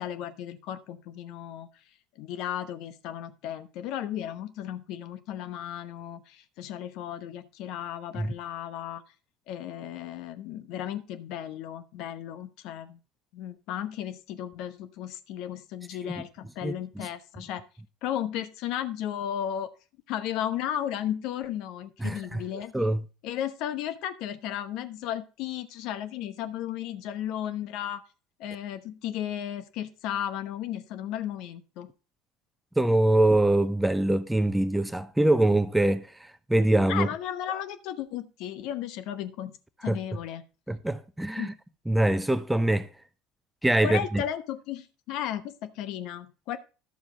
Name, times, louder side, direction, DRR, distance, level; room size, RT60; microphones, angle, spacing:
voice 1, 0.0-1.7 2.2-9.0 9.5-13.0 13.3-17.6 18.0-19.7 20.1-22.7 23.2-28.0 28.4-31.9 36.9-39.5 39.8-40.4 41.4-41.5 43.8-46.6, left 10 dB, 60° left, 0.9 m, -34 dB
voice 2, 16.6-17.1 22.0-22.4 22.7-23.0 32.8-36.0 36.5-37.1 39.8-40.0 40.7-41.5 41.9-42.9 43.6-44.2, right 1 dB, 5° right, 0.8 m, -24 dB
11.5 x 7.0 x 3.9 m
hypercardioid pair, 70°, 0 cm